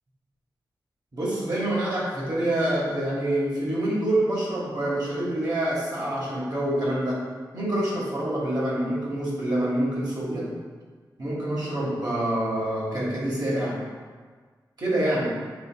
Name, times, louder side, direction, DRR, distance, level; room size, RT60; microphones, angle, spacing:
voice 1, 1.1-7.2 7.5-10.5 11.2-13.8 14.8-15.3, right 1 dB, 55° right, -6 dB, 1.4 m, -26 dB
5.2 x 3.4 x 2.2 m, 1.5 s
cardioid pair, 55°, 8 cm